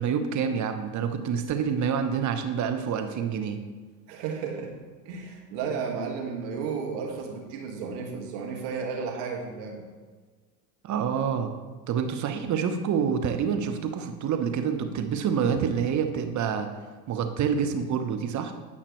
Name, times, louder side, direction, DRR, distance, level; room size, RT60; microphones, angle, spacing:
voice 1, 0.0-3.6 10.8-11.5 11.9-16.7 17.1-18.5, right 7 dB, 35° right, 7 dB, 1.1 m, -27 dB
voice 2, 4.1-4.7 5.1-9.9, right 5 dB, 60° right, 1 dB, 2.2 m, -33 dB
15.5 x 5.8 x 3.2 m, 1.4 s
hypercardioid pair, 85°, 49 cm